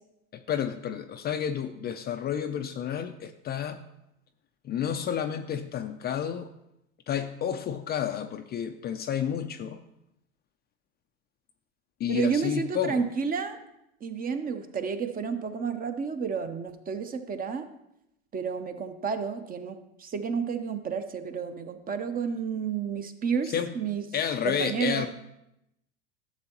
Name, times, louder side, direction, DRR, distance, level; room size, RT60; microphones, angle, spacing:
voice 1, 0.5-3.8 4.6-6.5 7.1-9.8 12.0-13.0 23.4-23.7 24.1-25.1, left 9 dB, 30° left, 8 dB, 0.4 m, -30 dB
voice 2, 12.1-13.6 14.0-17.7 18.3-24.0 24.4-25.1, right 6 dB, 25° right, 8 dB, 0.7 m, -31 dB
11.5 x 6.9 x 2.9 m, 0.85 s
hypercardioid pair, 95°, 33 cm